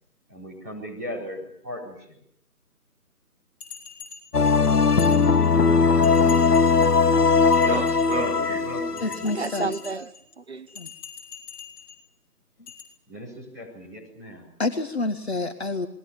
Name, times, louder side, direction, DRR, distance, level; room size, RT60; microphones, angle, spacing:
voice 1, 0.3-2.2 4.5-6.8 8.1-9.3 13.1-14.5, left 1 dB, 15° right, 4.3 m, -38 dB
Bell, 3.6-5.7 6.0-7.0 7.4-8.5 9.0-10.2 10.7-12.0 12.7-12.8, left 7 dB, 15° left, 7.9 m, -44 dB
sound 1, 4.3-9.8, left 5 dB, 75° left, 1.5 m, -19 dB
voice 2, 7.6-8.7 9.2-10.7, right 3 dB, 45° right, 1.0 m, -31 dB
voice 3, 9.0-9.7 10.7-10.9 14.6-15.9, left 3 dB, 40° left, 1.5 m, -28 dB
28.0 x 21.0 x 7.1 m
figure-of-eight pair, 175°, 47 cm